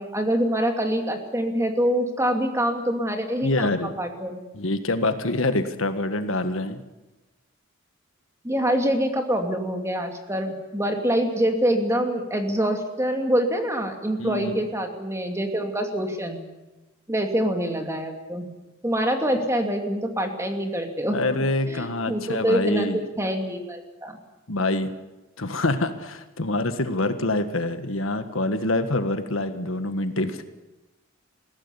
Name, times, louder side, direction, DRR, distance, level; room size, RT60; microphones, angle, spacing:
voice 1, 0.0-4.4 8.4-16.4 17.1-18.5 18.8-21.2 21.7-24.2, equal, 15° right, 4 dB, 2.6 m, -25 dB
voice 2, 3.4-3.9 4.5-6.8 14.2-14.6 21.1-23.0 24.5-24.9 25.4-30.4, left 2 dB, 75° left, 9 dB, 1.6 m, -25 dB
21.5 x 16.5 x 9.9 m, 1.1 s
head